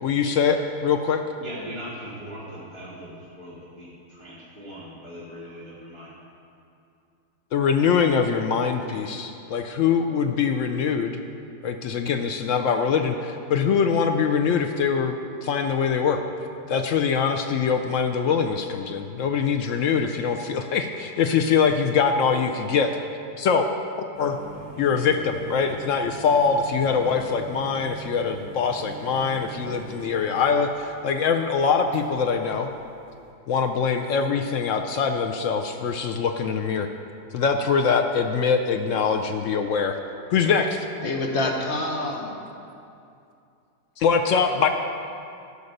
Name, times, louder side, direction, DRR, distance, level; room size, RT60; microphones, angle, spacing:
voice 1, 0.0-1.2 7.5-11.2 11.6-16.2 16.7-22.9 23.4-23.7 24.2-24.4 24.8-32.7 33.5-36.9 37.3-40.0 40.3-40.9 44.0-44.7, left 6 dB, 75° left, 5 dB, 0.7 m, -23 dB
voice 2, 1.4-6.1, equal, 20° left, -9 dB, 1.4 m, -40 dB
sound 1, 24.1-33.3, right 3 dB, 55° right, 1.7 m, -42 dB
voice 3, 41.0-42.4, left 2 dB, 45° left, 2 dB, 1.1 m, -27 dB
12.0 x 5.3 x 6.6 m, 2.6 s
omnidirectional pair, 1.8 m